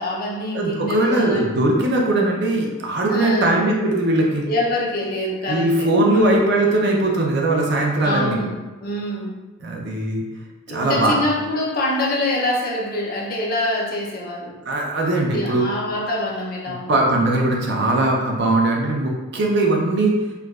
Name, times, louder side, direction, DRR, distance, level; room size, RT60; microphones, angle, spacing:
voice 1, 0.0-1.5 3.1-3.6 4.4-6.4 8.0-9.3 10.7-14.6 15.3-17.0, left 1 dB, 40° left, -3 dB, 0.5 m, -25 dB
voice 2, 0.5-4.4 5.5-8.4 9.6-10.2 10.7-11.2 14.7-15.7 16.9-20.1, right 2 dB, 50° right, -1 dB, 0.5 m, -20 dB
4.5 x 2.2 x 2.3 m, 1.1 s
head